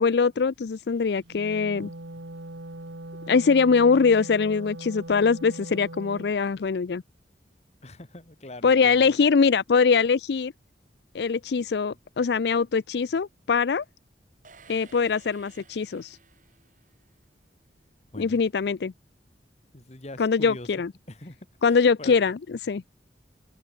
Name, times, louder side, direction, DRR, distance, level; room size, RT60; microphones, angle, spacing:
voice 1, 0.0-1.9 3.3-7.0 8.6-10.5 11.1-13.8 14.7-16.2 18.2-18.9 20.2-20.9 21.6-22.4 22.7-22.8, left 5 dB, 65° left, 0.4 m, -22 dB
Wind instrument woodwind instrument, 1.2-6.3, right 2 dB, 85° right, 1.7 m, -40 dB
voice 2, 7.8-9.2 18.1-18.4 19.7-20.7 21.1-22.2, left 1 dB, 40° left, 2.2 m, -42 dB
sound 1, 14.4-17.3, right 5 dB, 45° right, 6.3 m, -55 dB
head